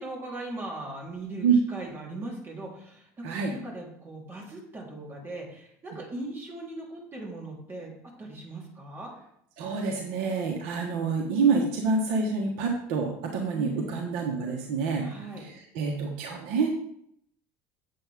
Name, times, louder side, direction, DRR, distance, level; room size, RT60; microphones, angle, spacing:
voice 1, 0.0-7.9 8.2-9.1 13.5-14.0 15.0-15.4, right 2 dB, 30° right, -2 dB, 3.6 m, -39 dB
voice 2, 9.6-15.1 15.4-16.7, right 5 dB, 75° right, 2 dB, 1.4 m, -27 dB
8.6 x 7.6 x 3.6 m, 0.71 s
supercardioid pair, 100°, 8 cm